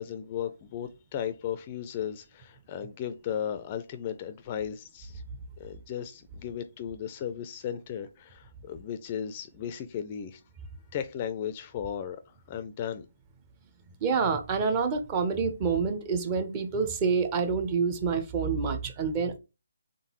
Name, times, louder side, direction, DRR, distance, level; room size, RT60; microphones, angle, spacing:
voice 1, 0.0-5.2 5.6-10.4 10.9-13.1, left 9 dB, 30° left, 0.4 m, -36 dB
voice 2, 14.0-19.4, right 5 dB, 25° right, 0.6 m, -27 dB
3.7 x 3.6 x 3.0 m
figure-of-eight pair, 145°, 0 cm